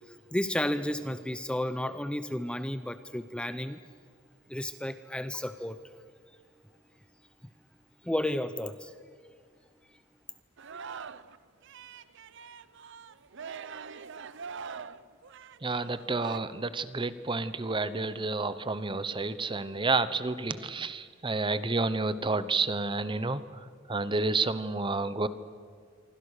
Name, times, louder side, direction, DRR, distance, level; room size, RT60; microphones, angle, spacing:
voice 1, 0.3-3.8 4.5-5.8 8.0-8.9, left 1 dB, 5° left, 11 dB, 0.7 m, -32 dB
Singing, 10.6-11.4 11.6-16.4, right 6 dB, 65° right, 0.7 m, -43 dB
voice 2, 15.6-25.3, right 3 dB, 25° right, 14 dB, 0.9 m, -30 dB
26.5 x 24.5 x 6.6 m, 2.1 s
head